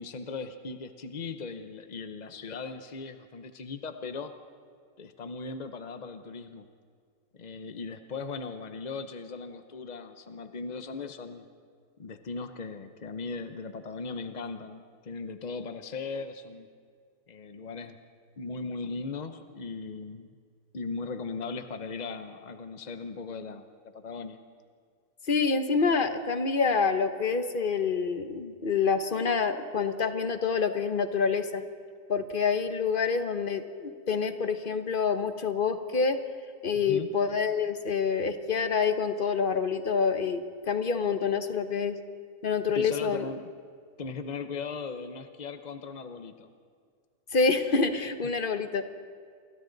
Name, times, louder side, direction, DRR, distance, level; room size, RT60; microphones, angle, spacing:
voice 1, 0.0-4.3 5.0-6.7 7.4-11.5 12.0-16.7 17.3-18.0 18.4-20.3 20.7-23.6 23.9-24.4 36.7-37.1 42.7-43.5 44.0-46.5, left 4 dB, 60° left, 8 dB, 0.4 m, -38 dB
voice 2, 25.3-31.6 32.1-36.2 36.6-42.0 42.4-43.3 47.3-48.9, left 5 dB, 40° left, 8 dB, 0.9 m, -27 dB
28.5 x 24.0 x 4.0 m, 2.1 s
omnidirectional pair, 2.0 m